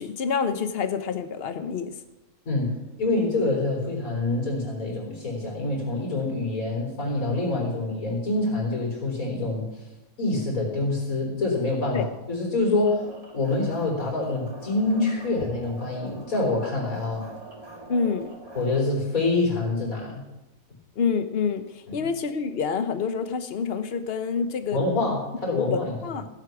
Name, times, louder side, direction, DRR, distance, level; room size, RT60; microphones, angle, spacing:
voice 1, 0.0-2.0 11.9-12.1 17.9-18.3 21.0-24.8 25.5-26.3, left 6 dB, 45° left, 10 dB, 1.0 m, -27 dB
voice 2, 2.5-9.8 10.2-13.1 13.3-17.3 18.5-20.2 24.7-26.2, left 2 dB, 60° left, -1 dB, 4.5 m, -26 dB
sound 1, 12.8-18.8, right 2 dB, 25° right, 1.9 m, -43 dB
15.5 x 8.2 x 6.0 m, 0.99 s
omnidirectional pair, 1.6 m